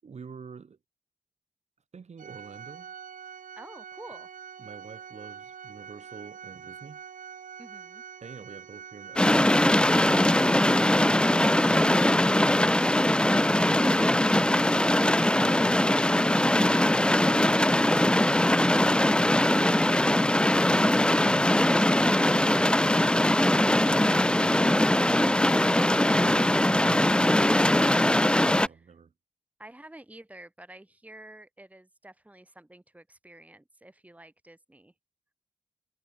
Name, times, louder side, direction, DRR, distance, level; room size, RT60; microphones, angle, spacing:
voice 1, 0.0-0.8 1.9-2.9 4.6-7.0 8.2-9.6 14.7-15.0 15.3-16.0 22.0-22.9 26.1-27.3 28.6-29.1, right 5 dB, 55° right, 7.6 m, -47 dB
Organ, 2.2-12.8, right 7 dB, 80° right, 4.9 m, -45 dB
voice 2, 3.6-4.3 7.6-8.0 28.7-28.9 29.6-34.9, right 1 dB, 10° right, 7.7 m, -49 dB
sound 1, 9.2-28.7, left 1 dB, 5° left, 0.7 m, -21 dB
wide cardioid pair, 135°, 13 cm